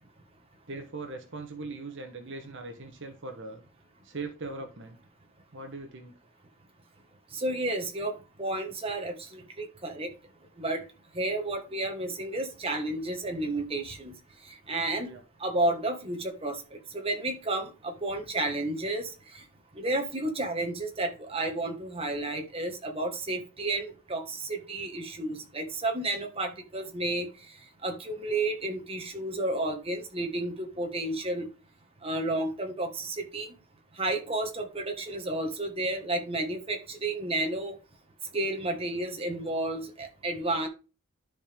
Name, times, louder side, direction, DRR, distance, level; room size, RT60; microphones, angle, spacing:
voice 1, 0.7-3.6 4.0-5.0 5.5-6.1 15.0-15.2, right 3 dB, 55° right, 5 dB, 1.0 m, -40 dB
voice 2, 7.3-10.1 10.6-10.8 11.1-14.1 14.5-15.1 15.4-19.4 19.7-27.3 27.8-31.5 32.0-33.5 34.0-37.7 38.3-40.7, right 2 dB, 25° right, 3 dB, 1.6 m, -31 dB
12.0 x 5.2 x 3.6 m, 0.32 s
head